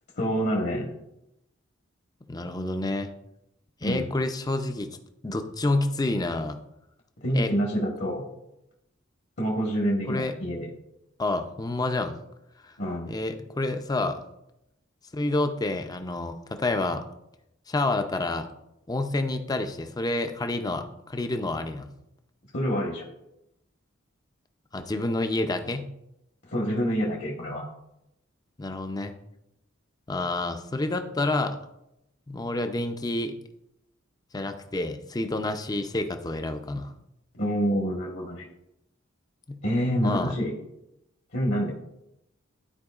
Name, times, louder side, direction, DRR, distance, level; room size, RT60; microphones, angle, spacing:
voice 1, 0.2-0.9 3.8-4.1 7.2-8.3 9.4-10.7 12.8-13.2 22.5-23.0 26.4-27.6 37.3-38.5 39.6-40.5 41.3-41.7, equal, 60° left, -2 dB, 1.3 m, -27 dB
voice 2, 2.3-3.1 3.8-4.9 5.2-6.6 7.3-7.5 10.1-10.3 11.2-12.1 12.6-12.7 13.1-14.2 15.1-17.0 17.7-18.5 18.9-21.9 24.7-25.9 28.6-29.1 30.1-31.6 32.3-33.3 34.3-36.9 39.5-39.6 40.0-40.3, left 2 dB, 20° left, 7 dB, 0.5 m, -28 dB
12.5 x 4.5 x 2.4 m, 0.85 s
head